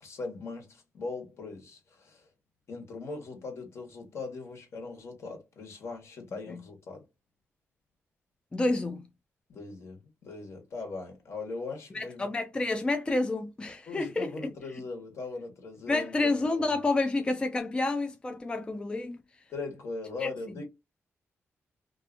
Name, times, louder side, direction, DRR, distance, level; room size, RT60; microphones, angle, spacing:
voice 1, 0.0-2.3 2.7-7.0 9.5-12.3 12.5-12.6 13.9-16.7 19.5-20.7, left 3 dB, 65° left, 1.2 m, -40 dB
voice 2, 8.5-9.0 11.9-14.5 15.9-19.2 20.2-20.3, left 2 dB, 20° left, 0.3 m, -29 dB
2.7 x 2.5 x 2.5 m
cardioid pair, 115°, 5 cm